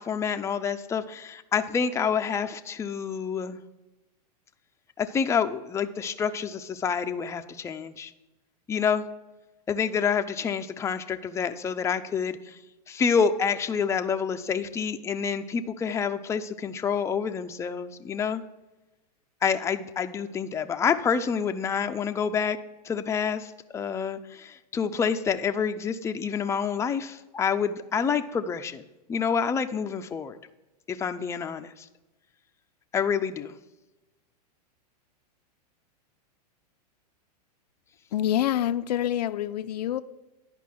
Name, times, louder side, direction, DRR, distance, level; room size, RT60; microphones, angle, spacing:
voice 1, 0.0-3.6 5.0-8.1 8.7-9.0 9.7-12.6 12.9-18.4 19.4-22.6 22.8-28.8 29.1-30.4 30.9-31.9 32.9-33.5, left 6 dB, 15° left, 7 dB, 0.5 m, -28 dB
voice 2, 38.1-40.0, left 11 dB, 75° left, 12 dB, 0.5 m, -26 dB
10.5 x 5.3 x 7.5 m, 1.0 s
hypercardioid pair, 115°, 21 cm